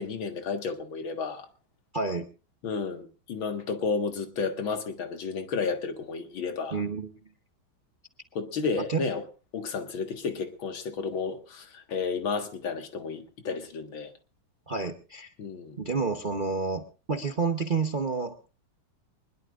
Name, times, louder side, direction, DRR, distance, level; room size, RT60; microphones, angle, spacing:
voice 1, 0.0-1.5 2.6-6.8 8.3-9.2 9.5-14.1 15.4-15.8, left 5 dB, 70° left, 2.4 m, -32 dB
voice 2, 1.9-2.3 6.7-7.1 8.9-9.0 14.7-15.3 15.8-18.5, right 4 dB, 40° right, 0.8 m, -29 dB
22.5 x 21.0 x 2.5 m
omnidirectional pair, 2.3 m